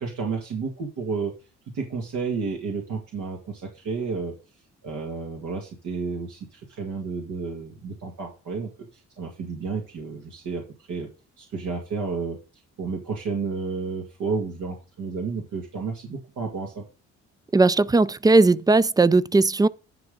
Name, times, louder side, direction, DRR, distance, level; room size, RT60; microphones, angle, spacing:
voice 1, 0.0-1.3 1.7-4.4 4.8-8.7 9.2-11.1 11.4-12.4 12.8-16.8, right 4 dB, 80° right, 2.2 m, -31 dB
voice 2, 17.5-19.7, right 3 dB, 15° right, 0.3 m, -18 dB
10.5 x 5.7 x 3.8 m
cardioid pair, 90°, 30 cm